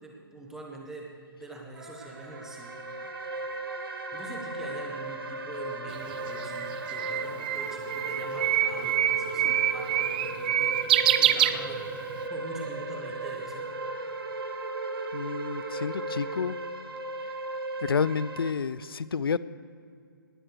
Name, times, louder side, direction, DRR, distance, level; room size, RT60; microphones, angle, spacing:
voice 1, 0.0-2.7 4.1-10.8 11.2-11.9 12.3-13.7, right 2 dB, 5° right, -1 dB, 1.4 m, -44 dB
sound 1, 1.7-17.0, right 3 dB, 65° right, 1.8 m, -39 dB
sound 2, 2.2-18.5, right 2 dB, 80° right, 1.3 m, -38 dB
Bird, 5.9-12.2, right 11 dB, 25° right, 0.3 m, -26 dB
voice 2, 15.1-16.6 17.8-19.4, left 6 dB, 80° left, 18 dB, 0.5 m, -29 dB
19.0 x 8.9 x 4.8 m, 2.3 s
hypercardioid pair, 150°, 12 cm